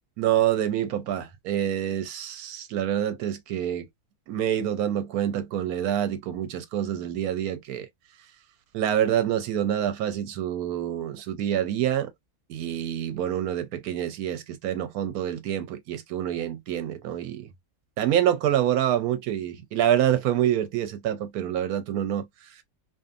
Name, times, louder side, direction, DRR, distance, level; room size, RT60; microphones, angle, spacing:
voice 1, 0.2-3.9 4.3-7.9 8.7-12.1 12.5-17.5 18.0-22.3, right 11 dB, 90° right, 1.1 m, -26 dB
2.6 x 2.5 x 2.4 m
omnidirectional pair, 1.5 m